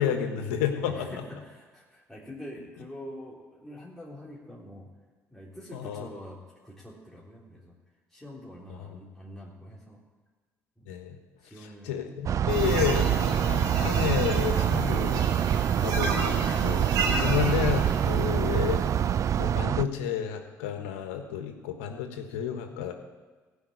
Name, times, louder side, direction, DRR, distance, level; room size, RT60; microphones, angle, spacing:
voice 1, 0.0-1.1 5.7-6.1 8.7-8.9 10.9-11.2 11.8-15.2 15.8-18.8 19.4-22.9, left 9 dB, 90° left, 6 dB, 1.4 m, -31 dB
voice 2, 0.8-4.9 5.3-7.7 8.1-10.0 10.8-10.9 11.4-11.9 12.3-12.5, left 1 dB, 5° left, -6 dB, 3.5 m, -45 dB
sound 1, 12.3-19.8, right 9 dB, 50° right, 0.4 m, -25 dB
sound 2, 12.5-19.4, right 3 dB, 70° right, 3.2 m, -34 dB
16.0 x 5.5 x 9.6 m, 1.3 s
supercardioid pair, 70°, 7 cm